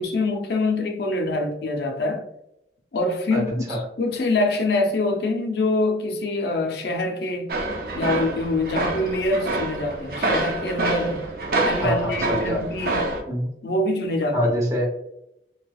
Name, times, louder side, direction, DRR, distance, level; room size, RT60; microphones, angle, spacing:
voice 1, 0.0-2.3 2.9-7.5 7.9-11.3 11.6-13.0 13.6-14.4, left 2 dB, 70° left, 4 dB, 0.5 m, -25 dB
sound 1, 7.5-13.2, right 2 dB, 55° right, 0.6 m, -26 dB
voice 2, 11.8-12.6 13.3-13.5 14.3-14.8, equal, 20° right, -2 dB, 0.7 m, -24 dB
3.3 x 2.8 x 2.3 m, 0.82 s
head